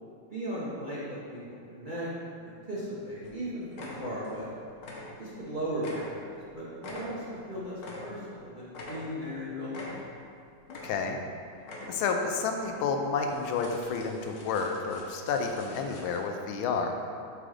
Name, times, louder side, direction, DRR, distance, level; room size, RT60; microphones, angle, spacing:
voice 1, 0.3-1.4 1.7-2.3 2.7-4.5 5.2-6.2 6.5-9.9 17.0-17.1, equal, 40° right, -9 dB, 0.7 m, -36 dB
sound 1, 2.8-2.9 3.2-3.4 3.7-4.5 4.7-5.5 5.8-8.4 8.7-9.4 9.7-10.3 10.6-11.3 11.6-12.2 12.6-12.7 13.2-16.2, left 2 dB, 55° left, 1.0 m, -45 dB
voice 2, 10.7-11.2 11.9-16.9, left 5 dB, 90° left, 4 dB, 1.4 m, -30 dB
5.9 x 4.9 x 3.8 m, 2.4 s
omnidirectional pair, 2.2 m